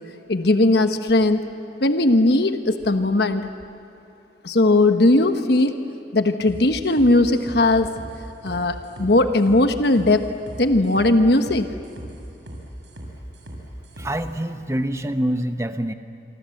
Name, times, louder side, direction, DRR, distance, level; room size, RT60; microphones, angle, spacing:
voice 1, 0.3-1.4 1.8-3.5 4.4-5.7 6.1-7.9 8.4-10.2 10.6-11.7, left 2 dB, 60° left, 7 dB, 1.2 m, -18 dB
sound 1, 6.5-14.2, equal, 80° right, 6.2 m, -39 dB
voice 2, 14.0-15.9, right 1 dB, 15° right, 8 dB, 1.0 m, -25 dB
26.5 x 25.0 x 7.8 m, 2.7 s
head